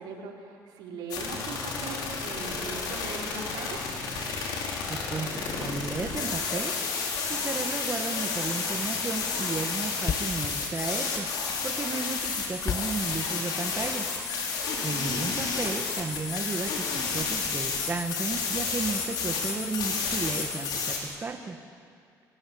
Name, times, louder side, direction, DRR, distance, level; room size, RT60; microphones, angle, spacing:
voice 1, 0.0-3.8 14.7-15.2, right 4 dB, 85° right, -1 dB, 4.8 m, -40 dB
sound 1, 1.1-21.0, left 5 dB, 80° left, 5.3 m, -31 dB
voice 2, 4.9-6.7 7.3-14.1 14.8-21.6, right 4 dB, 30° right, 4 dB, 1.8 m, -34 dB
Thump thud, 10.0-14.0, left 7 dB, 45° left, 1.2 m, -35 dB
26.5 x 17.0 x 9.6 m, 2.2 s
cardioid pair, 105°, 7 cm